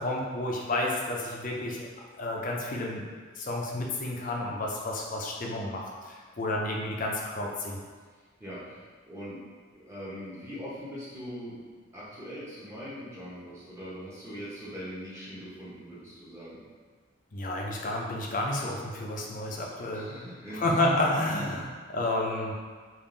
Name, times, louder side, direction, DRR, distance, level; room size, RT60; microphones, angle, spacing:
voice 1, 0.0-1.9 2.2-3.0 3.4-7.8 17.3-20.1 20.5-22.5, left 1 dB, 40° left, -1 dB, 0.5 m, -30 dB
voice 2, 8.4-9.5 9.7-11.6 11.9-16.6 19.9-20.7 21.0-21.1, equal, 15° right, -9 dB, 1.0 m, -41 dB
3.6 x 2.6 x 3.8 m, 1.5 s
head